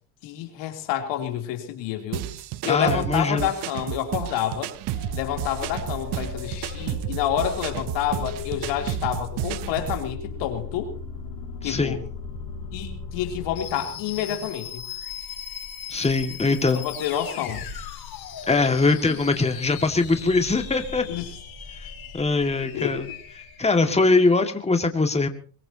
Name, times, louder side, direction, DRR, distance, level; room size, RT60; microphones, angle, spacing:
voice 1, 0.2-2.3 2.6-4.7 5.1-10.9 11.6-12.0 12.7-14.8 16.7-17.6 21.1-21.3 22.7-23.0, left 10 dB, 80° left, 5 dB, 3.3 m, -28 dB
sound 1, 2.1-10.1, right 15 dB, 70° right, 0.9 m, -32 dB
voice 2, 2.7-3.5 11.6-12.0 15.9-16.9 18.5-21.1 21.8-21.9 22.1-23.1 23.6-25.3, left 3 dB, 15° left, 6 dB, 2.1 m, -22 dB
sound 2, 4.9-24.3, left 5 dB, 60° left, 4.8 m, -37 dB
23.0 x 20.5 x 2.9 m, 0.40 s
supercardioid pair, 85°, 42 cm